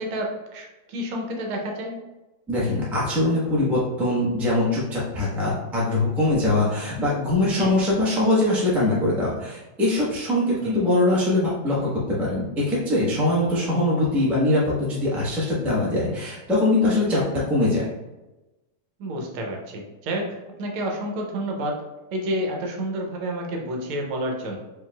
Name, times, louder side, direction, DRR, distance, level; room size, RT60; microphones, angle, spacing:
voice 1, 0.0-2.0 7.6-7.7 10.6-10.8 19.0-21.8 22.1-24.6, right 1 dB, 90° right, 1 dB, 1.6 m, -29 dB
voice 2, 2.5-17.2 17.5-17.8, left 2 dB, ahead, -7 dB, 0.5 m, -22 dB
4.8 x 3.1 x 2.3 m, 1.1 s
omnidirectional pair, 2.3 m